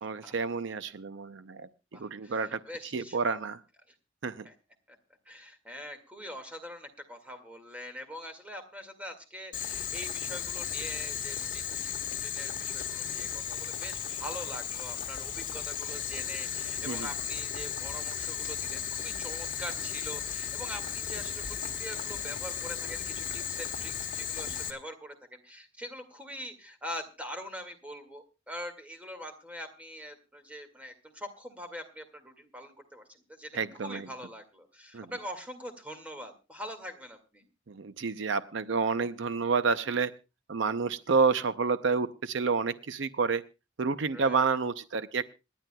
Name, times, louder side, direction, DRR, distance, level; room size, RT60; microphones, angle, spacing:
voice 1, 0.0-1.7 2.0-2.6 2.9-3.6 4.2-4.5 16.9-17.1 33.5-34.1 34.9-35.1 37.7-40.1 40.5-43.4 43.8-45.2, right 5 dB, 65° right, 12 dB, 0.6 m, -29 dB
voice 2, 1.9-3.5 3.9-4.0 4.4-4.5 4.9-5.0 5.3-37.5 44.1-44.4, equal, 5° right, 6 dB, 2.0 m, -43 dB
Boiling, 9.5-24.7, left 8 dB, 40° left, 1.6 m, -35 dB
26.5 x 11.0 x 2.3 m, 0.28 s
head